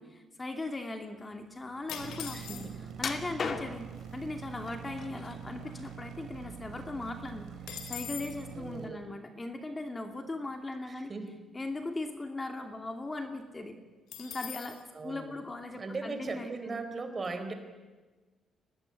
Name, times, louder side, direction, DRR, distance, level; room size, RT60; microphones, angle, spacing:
voice 1, 0.0-2.6 3.0-3.8 4.1-7.6 7.9-11.1 11.5-13.8 14.2-14.8 15.0-16.8, left 2 dB, 20° left, 6 dB, 2.5 m, -39 dB
sound 1, 1.9-3.0 3.8-3.9 4.1-4.4 4.8-6.3 6.6-6.7 7.0-8.4 14.1-14.8, left 9 dB, 80° left, 2.9 m, -43 dB
sound 2, 2.0-8.9, right 8 dB, 75° right, 2.5 m, -45 dB
voice 2, 2.3-2.7 8.5-9.1 10.9-11.3 14.9-15.4 15.8-17.5, right 3 dB, 30° right, 7 dB, 4.2 m, -38 dB
sound 3, 3.0-4.0 4.7-5.3 5.7-6.7 7.0-7.2 7.7-7.8, left 5 dB, 50° left, 2.3 m, -37 dB
23.5 x 19.0 x 10.0 m, 1.3 s
cardioid pair, 90°, 0 cm